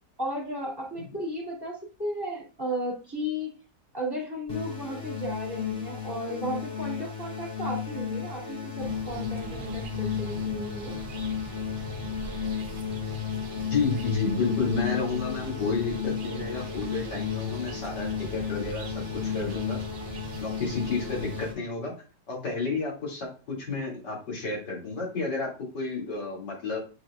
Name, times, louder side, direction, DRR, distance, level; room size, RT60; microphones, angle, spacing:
voice 1, 0.2-3.5 3.9-10.9, equal, 15° right, -3 dB, 2.5 m, -34 dB
sound 1, 4.5-21.5, left 7 dB, 35° left, 2.7 m, -34 dB
sound 2, 8.8-21.5, right 4 dB, 75° right, 0.4 m, -41 dB
voice 2, 13.5-19.8 20.4-21.9 22.3-26.8, left 4 dB, 90° left, -3 dB, 3.4 m, -31 dB
7.9 x 5.8 x 2.4 m, 0.33 s
omnidirectional pair, 1.8 m